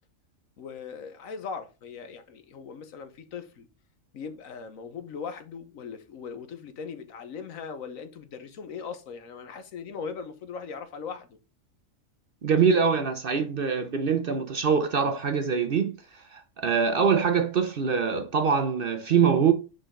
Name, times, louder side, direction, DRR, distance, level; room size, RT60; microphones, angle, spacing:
voice 1, 0.6-3.7 4.1-11.4, left 6 dB, 75° left, 1.3 m, -39 dB
voice 2, 12.4-15.9 16.3-19.5, right 6 dB, 50° right, 0.7 m, -24 dB
6.6 x 5.1 x 3.7 m
omnidirectional pair, 1.4 m